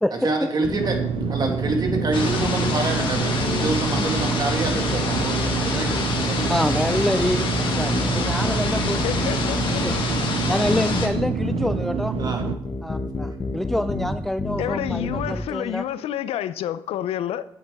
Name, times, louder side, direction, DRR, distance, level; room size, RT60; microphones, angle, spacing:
voice 1, 0.2-1.0 1.3-6.6 12.2-12.4, right 2 dB, 45° right, 1.8 m, -27 dB
sound 1, 0.6-15.4, left 3 dB, 40° left, 1.2 m, -30 dB
sound 2, 0.8-12.6, right 9 dB, 70° right, 0.4 m, -27 dB
sound 3, 2.1-11.1, left 4 dB, 55° left, 1.7 m, -27 dB
voice 2, 6.5-9.0 9.8-9.9 10.5-12.2 12.8-15.8, left 1 dB, 5° left, 0.3 m, -26 dB
voice 3, 8.8-10.0 14.6-17.5, left 11 dB, 85° left, 0.4 m, -29 dB
8.3 x 8.2 x 3.5 m
cardioid pair, 70°, 10 cm